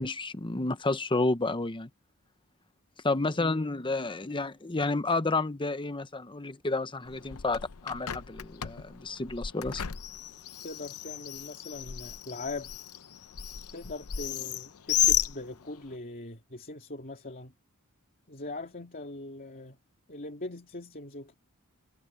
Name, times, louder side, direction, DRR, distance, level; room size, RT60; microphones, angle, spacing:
voice 1, 0.0-1.9 3.0-9.8, left 3 dB, 20° left, 0.9 m, -30 dB
voice 2, 3.3-3.7 10.6-12.7 13.7-17.5 18.3-19.8 20.1-21.3, left 2 dB, 40° left, 2.7 m, -41 dB
Bird, 7.1-15.9, left 11 dB, 75° left, 0.7 m, -34 dB
head